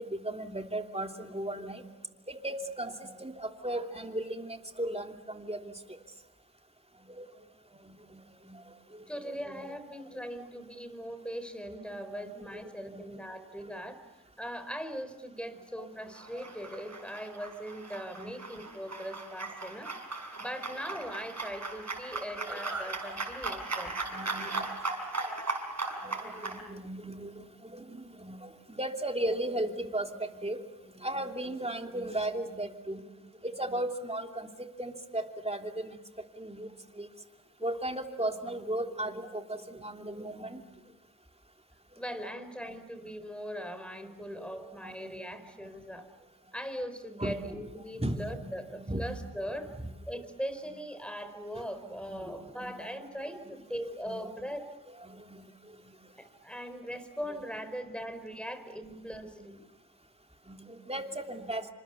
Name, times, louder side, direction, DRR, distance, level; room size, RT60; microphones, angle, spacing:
voice 1, 0.0-1.9 2.3-5.8 7.1-7.3 7.8-7.9 8.4-8.6 9.2-9.7 12.1-13.1 15.8-15.9 16.6-16.8 18.1-18.3 20.4-20.5 22.1-22.6 24.1-24.6 26.0-30.6 31.0-33.0 33.4-34.5 34.8-36.0 36.4-37.1 37.6-40.6 44.4-44.5 44.8-45.1 47.2-47.4 48.0-49.1 49.8-49.9 52.0-52.3 52.6-53.0 54.0-54.3 55.0-55.5 60.5-61.7, right 1 dB, 20° right, 3 dB, 3.1 m, -36 dB
voice 2, 9.1-14.0 14.4-19.9 20.4-24.0 41.9-46.0 46.5-49.7 50.1-54.7 56.2-59.7, equal, 5° left, 10 dB, 4.4 m, -40 dB
sound 1, 16.1-26.6, right 3 dB, 55° right, 6.2 m, -38 dB
28.5 x 26.0 x 7.1 m, 1.0 s
cardioid pair, 45°, 33 cm